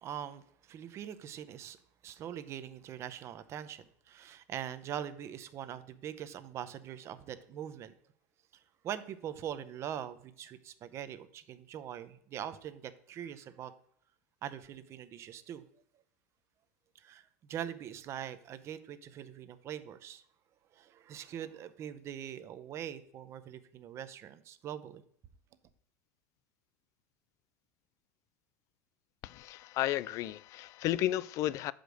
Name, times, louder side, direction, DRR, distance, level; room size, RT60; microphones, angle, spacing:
voice 1, 0.0-1.8 2.0-7.9 8.5-13.7 14.4-15.6 16.9-20.2 20.7-25.0, right 10 dB, 40° right, 0.6 m, -42 dB
voice 2, 29.2-31.7, left 14 dB, 50° left, 0.4 m, -33 dB
6.6 x 5.1 x 6.2 m
supercardioid pair, 120°, 7 cm